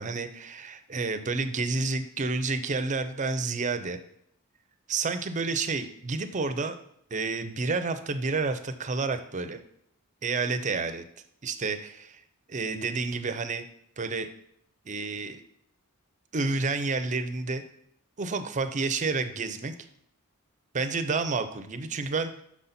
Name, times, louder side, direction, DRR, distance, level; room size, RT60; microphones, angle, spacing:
voice 1, 0.0-4.0 4.9-6.8 7.1-9.6 10.2-11.0 11.4-12.2 12.5-13.6 14.0-14.3 14.9-15.4 16.3-17.6 18.2-19.7 20.7-22.4, right 4 dB, 35° right, 9 dB, 0.6 m, -30 dB
6.1 x 4.0 x 5.8 m, 0.71 s
head